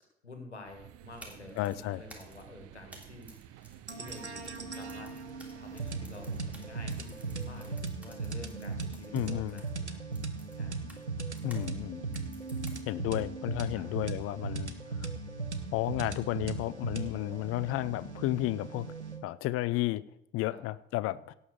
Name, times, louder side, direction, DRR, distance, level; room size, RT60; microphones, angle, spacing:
voice 1, 0.2-5.1 5.5-10.0 10.6-10.7 13.7-13.9 20.5-20.6, left 2 dB, 85° left, 5 dB, 1.7 m, -50 dB
sound 1, 0.6-7.8, right 12 dB, 45° right, 0.8 m, -52 dB
sound 2, 1.0-11.7 12.1-13.1, equal, 5° right, 3.2 m, -55 dB
voice 2, 1.6-2.0 9.1-9.6 11.4-12.1 12.8-14.7 15.0-15.1 15.7-18.9 19.2-20.0 20.3-21.3, left 16 dB, 45° left, 18 dB, 0.6 m, -32 dB
sound 3, 3.9-19.2, right 4 dB, 90° right, 0.9 m, -38 dB
17.0 x 5.7 x 6.5 m, 0.83 s
figure-of-eight pair, 60°, 33 cm